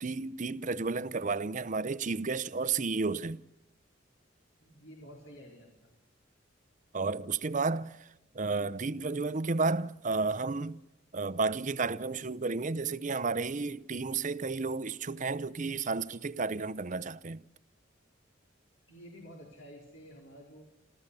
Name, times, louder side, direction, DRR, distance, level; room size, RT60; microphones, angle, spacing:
voice 1, 0.0-3.5 6.9-10.8 11.1-17.4, right 4 dB, 40° right, 0.7 m, -32 dB
voice 2, 4.6-5.9 18.9-20.6, equal, 80° left, 4.2 m, -51 dB
27.0 x 14.0 x 6.9 m
head